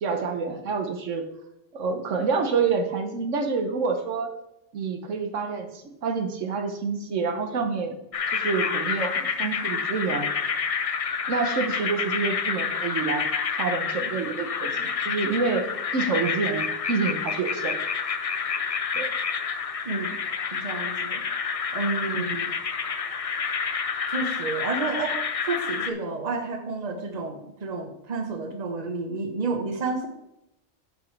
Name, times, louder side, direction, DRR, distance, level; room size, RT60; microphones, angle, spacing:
voice 1, 0.0-1.3 1.7-4.3 4.7-7.9 8.3-10.3 11.3-13.3 13.6-15.7 15.9-17.8 18.9-19.1 22.1-22.4, right 4 dB, 80° right, 6 dB, 1.2 m, -27 dB
sound 1, 8.1-25.9, left 6 dB, 55° left, 0.4 m, -29 dB
voice 2, 20.5-21.2 21.7-22.5 24.1-30.1, right 3 dB, 35° right, 5 dB, 1.1 m, -30 dB
9.3 x 7.0 x 3.3 m, 0.85 s
omnidirectional pair, 1.3 m